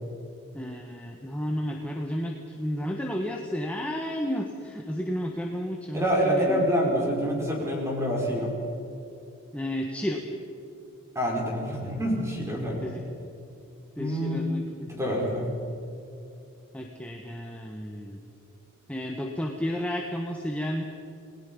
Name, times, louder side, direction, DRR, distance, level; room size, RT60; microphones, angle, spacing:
voice 1, 0.5-6.7 9.5-10.2 12.8-13.0 14.0-14.9 16.7-18.2 18.9-20.8, equal, 5° left, 1 dB, 1.5 m, -32 dB
voice 2, 5.9-8.5 11.2-12.9 14.0-14.4 14.8-15.5, equal, 15° right, -1 dB, 5.3 m, -26 dB
29.0 x 20.5 x 5.5 m, 2.8 s
head